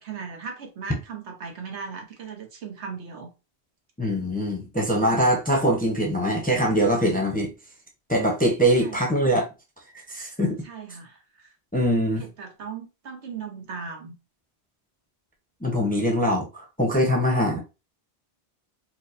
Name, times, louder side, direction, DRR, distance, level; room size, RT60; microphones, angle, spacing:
voice 1, 0.0-3.3 8.8-9.1 10.6-11.5 12.2-14.2, right 6 dB, 85° right, 1.2 m, -38 dB
voice 2, 4.0-7.5 8.1-9.5 10.1-10.6 11.7-12.2 15.6-17.6, equal, 10° left, 0.6 m, -23 dB
4.5 x 2.1 x 2.5 m
omnidirectional pair, 1.1 m